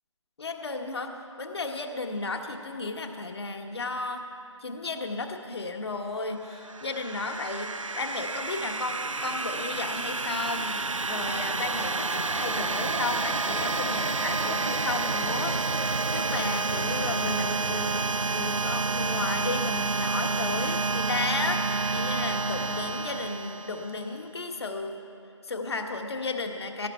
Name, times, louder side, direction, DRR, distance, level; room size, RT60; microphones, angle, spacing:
voice 1, 0.4-4.2 4.6-25.0 25.4-26.9, left 3 dB, 55° left, 4 dB, 1.5 m, -34 dB
sound 1, 6.5-24.1, right 3 dB, 85° right, 0.6 m, -29 dB
17.0 x 15.0 x 4.6 m, 2.6 s
figure-of-eight pair, 145°, 16 cm